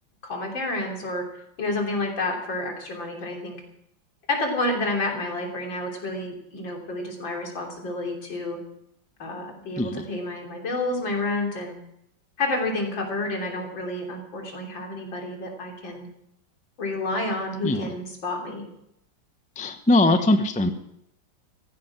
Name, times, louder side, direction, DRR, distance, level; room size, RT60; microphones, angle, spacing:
voice 1, 0.2-1.2 1.6-3.6 4.3-8.6 9.2-11.8 12.4-16.1 16.8-18.7, left 2 dB, 75° left, 1 dB, 4.0 m, -29 dB
voice 2, 19.6-20.7, left 2 dB, 10° left, 8 dB, 0.4 m, -21 dB
15.5 x 15.0 x 6.0 m, 0.77 s
omnidirectional pair, 2.1 m